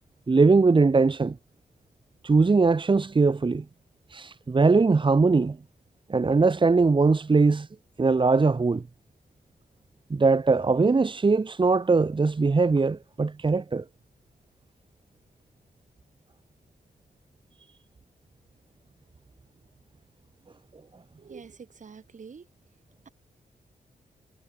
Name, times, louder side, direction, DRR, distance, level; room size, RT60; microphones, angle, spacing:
voice 1, 0.3-1.4 2.2-3.6 4.1-5.6 6.1-7.7 8.0-8.8 10.1-13.8, right 4 dB, 30° right, 1.5 m, -21 dB
voice 2, 21.2-22.5, right 5 dB, 50° right, 3.6 m, -46 dB
wide cardioid pair, 105°, 16 cm